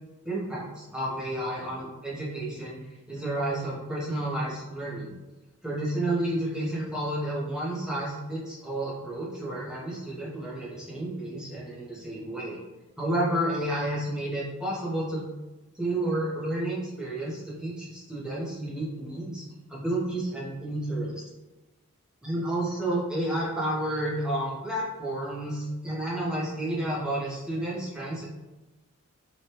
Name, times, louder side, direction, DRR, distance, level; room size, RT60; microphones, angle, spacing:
voice 1, 0.2-2.8 3.1-5.1 5.6-12.6 13.0-15.2 15.7-19.4 19.7-21.2 22.2-28.3, right 1 dB, 5° right, -6 dB, 0.5 m, -31 dB
3.0 x 2.2 x 2.7 m, 1.1 s
head